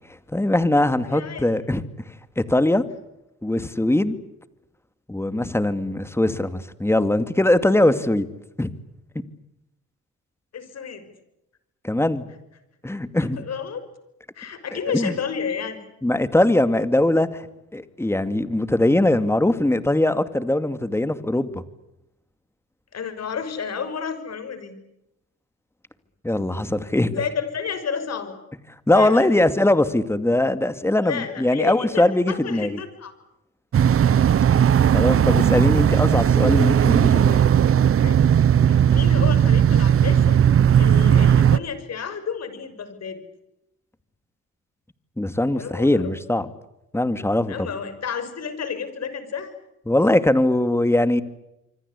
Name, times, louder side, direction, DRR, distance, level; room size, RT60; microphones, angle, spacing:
voice 1, 0.3-1.8 2.4-2.8 3.4-4.2 5.1-8.3 8.6-8.7 11.8-12.3 12.8-13.4 14.7-15.1 16.0-17.4 17.7-21.6 26.2-27.1 28.9-32.8 34.9-37.4 45.2-46.5 46.9-47.7 49.9-51.2, left 1 dB, 10° left, 11 dB, 2.3 m, -21 dB
voice 2, 1.1-1.5 10.5-11.1 13.4-13.8 14.3-15.8 22.9-24.7 27.1-28.3 28.9-29.3 31.0-33.1 38.0-38.2 38.6-40.4 40.8-43.2 45.5-46.1 47.5-49.5, left 6 dB, 55° left, 11 dB, 6.3 m, -31 dB
sound 1, 33.7-41.6, right 9 dB, 50° right, 0.9 m, -17 dB
27.0 x 25.0 x 8.4 m, 0.89 s
cardioid pair, 90°, 30 cm